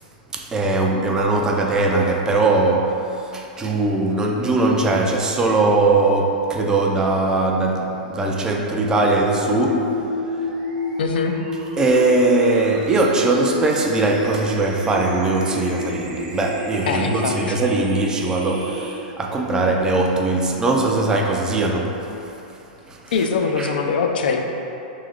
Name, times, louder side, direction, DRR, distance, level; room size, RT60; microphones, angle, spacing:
voice 1, 0.3-2.9 3.3-10.0 11.8-22.0 22.9-23.0 23.6-23.7, right 2 dB, 15° right, 0 dB, 0.3 m, -20 dB
sound 1, 8.9-18.9, left 2 dB, 50° right, 0.7 m, -30 dB
voice 2, 11.0-11.3 16.9-17.6 23.1-24.4, left 5 dB, 85° left, 3 dB, 0.4 m, -22 dB
3.3 x 3.2 x 3.7 m, 2.9 s
hypercardioid pair, 145°, 5 cm